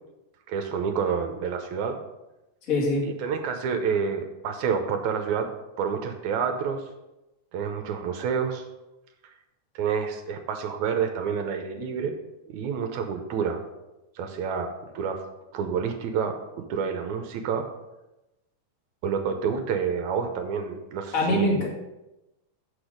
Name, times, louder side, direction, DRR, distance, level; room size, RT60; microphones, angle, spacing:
voice 1, 0.5-2.0 3.0-6.8 7.5-8.7 9.8-12.2 12.5-13.6 14.2-15.3 15.5-17.7 19.0-21.6, right 6 dB, 80° right, 6 dB, 2.1 m, -28 dB
voice 2, 2.7-3.1 21.1-21.8, left 1 dB, 30° left, -3 dB, 2.1 m, -23 dB
8.2 x 6.3 x 5.1 m, 0.98 s
omnidirectional pair, 3.5 m